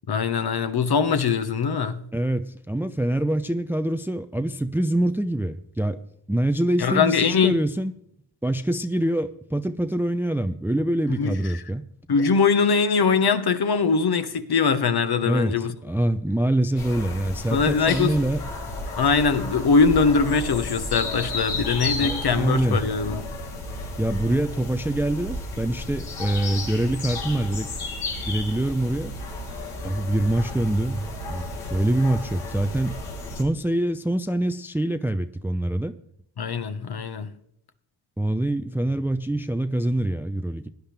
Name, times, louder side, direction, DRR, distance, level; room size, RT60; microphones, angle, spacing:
voice 1, 0.1-2.0 6.8-7.6 11.1-11.4 12.1-15.7 17.5-18.2 19.0-23.2 36.4-37.3, left 5 dB, 50° left, 1.3 m, -22 dB
voice 2, 2.1-6.0 6.3-7.9 8.4-11.9 15.2-18.4 22.0-22.8 24.0-27.7 28.3-29.1 29.8-33.0 33.4-35.9 38.2-40.7, right 1 dB, 5° right, 0.6 m, -25 dB
sound 1, 16.8-33.4, left 2 dB, 90° left, 3.3 m, -33 dB
17.5 x 10.5 x 3.4 m
supercardioid pair, 60°, 49 cm